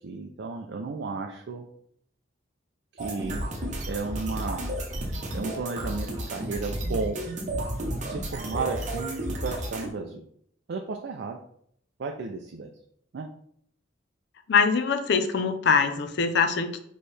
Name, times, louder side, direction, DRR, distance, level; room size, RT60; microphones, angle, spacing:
voice 1, 0.0-1.7 2.9-3.4 3.9-4.6 5.3-7.2 8.0-10.2 10.7-11.4 12.0-12.7 13.1-13.3, right 4 dB, 60° right, 3 dB, 0.4 m, -33 dB
sound 1, 3.0-9.9, right 1 dB, 40° right, 0.9 m, -32 dB
voice 2, 14.5-16.8, left 5 dB, 60° left, 8 dB, 0.5 m, -23 dB
4.4 x 3.1 x 3.3 m, 0.68 s
head